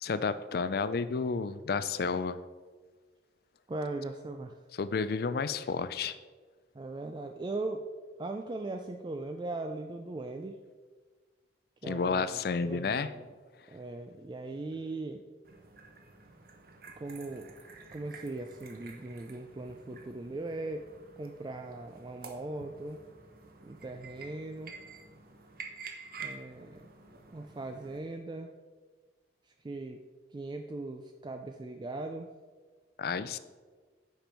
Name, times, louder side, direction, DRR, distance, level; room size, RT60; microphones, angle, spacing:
voice 1, 0.0-2.4 4.8-6.1 11.9-13.1 33.0-33.4, left 5 dB, 55° left, 13 dB, 0.4 m, -31 dB
voice 2, 3.7-4.6 6.7-7.9 8.2-10.6 11.8-13.3 13.7-15.2 17.0-17.5 17.9-23.0 23.6-24.8 26.2-26.9 27.3-28.5 29.4-30.0 30.3-32.3, right 2 dB, 25° right, 5 dB, 0.3 m, -39 dB
sound 1, 15.4-28.0, right 4 dB, 55° right, 0.9 m, -50 dB
9.2 x 5.3 x 4.5 m, 1.4 s
head